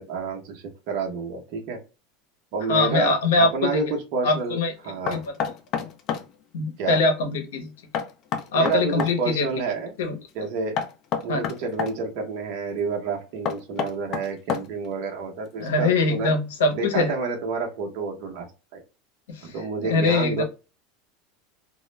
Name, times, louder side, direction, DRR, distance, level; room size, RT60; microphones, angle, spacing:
voice 1, 0.0-1.8 2.5-4.6 4.8-5.2 6.8-7.0 8.5-9.9 10.3-10.8 11.2-16.4 16.7-18.5 18.7-18.8 19.4-20.4, right 4 dB, 60° right, 1 dB, 0.8 m, -29 dB
voice 2, 2.7-3.8 4.2-4.7 5.1-5.3 6.5-7.7 8.5-9.5 10.0-10.2 11.3-11.4 15.6-17.1 19.4-20.4, left 3 dB, 90° left, 5 dB, 0.7 m, -23 dB
Knock, 5.1-6.3 7.9-9.2 10.8-11.9 13.5-14.9, left 7 dB, 50° left, 0.5 m, -28 dB
2.3 x 2.0 x 3.1 m, 0.30 s
supercardioid pair, 110°, 0 cm